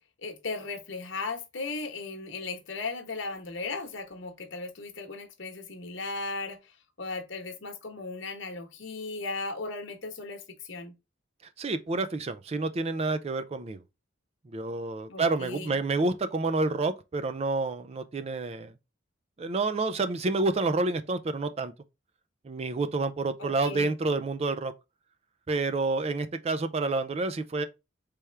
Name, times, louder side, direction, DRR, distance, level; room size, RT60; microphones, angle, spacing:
voice 1, 0.2-10.9 15.1-15.8 23.4-23.9, left 3 dB, 65° left, 1.1 m, -37 dB
voice 2, 11.6-13.8 14.5-18.7 19.4-21.7 22.4-24.7 25.5-27.6, right 3 dB, 30° right, 0.4 m, -29 dB
4.3 x 3.5 x 3.3 m
head